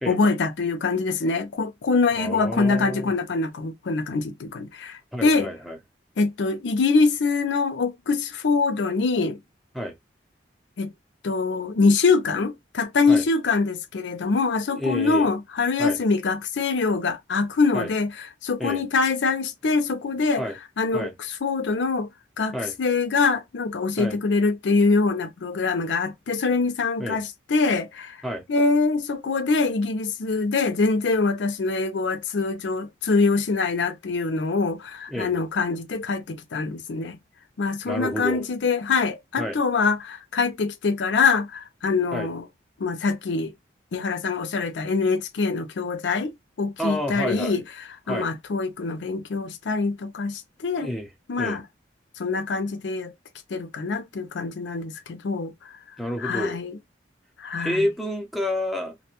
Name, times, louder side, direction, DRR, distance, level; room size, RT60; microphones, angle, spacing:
voice 1, 0.1-5.5 6.2-9.4 10.8-10.9 11.2-20.5 20.8-21.1 21.4-22.1 22.4-28.2 28.5-37.2 37.6-42.4 42.8-43.5 43.9-46.3 46.6-47.6 48.1-50.9 51.3-51.6 52.2-53.1 53.5-55.5 56.2-56.8 57.4-57.8, left 4 dB, 80° left, 0.5 m, -24 dB
voice 2, 2.2-3.1 5.1-5.8 9.7-9.9 13.1-13.2 14.7-15.3 15.8-16.0 17.7-17.9 18.6-18.8 20.4-20.5 20.9-21.1 22.5-22.7 24.0-24.2 27.0-27.2 28.2-28.4 35.1-35.3 37.8-38.5 39.4-39.6 42.1-42.3 46.8-47.6 48.1-48.3 50.7-51.1 51.4-51.6 56.0-56.6 57.6-58.9, equal, ahead, 0.6 m, -29 dB
2.5 x 2.2 x 2.8 m
head